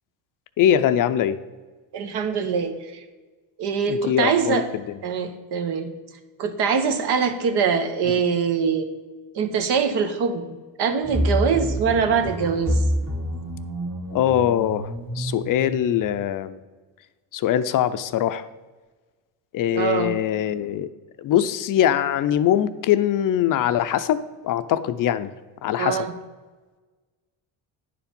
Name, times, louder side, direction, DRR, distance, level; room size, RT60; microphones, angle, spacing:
voice 1, 0.6-1.4 3.9-5.0 8.1-8.2 14.1-16.6 17.3-18.5 19.5-20.9 21.2-25.3 25.6-26.0, left 10 dB, 50° left, 13 dB, 0.5 m, -22 dB
voice 2, 1.9-3.0 3.6-4.7 5.0-5.9 6.4-8.9 9.3-12.8 19.7-20.2 25.8-26.1, right 6 dB, 65° right, 8 dB, 1.2 m, -23 dB
sound 1, 11.0-16.0, equal, 40° right, 2.3 m, -27 dB
10.0 x 4.8 x 5.2 m, 1.3 s
cardioid pair, 110°, 42 cm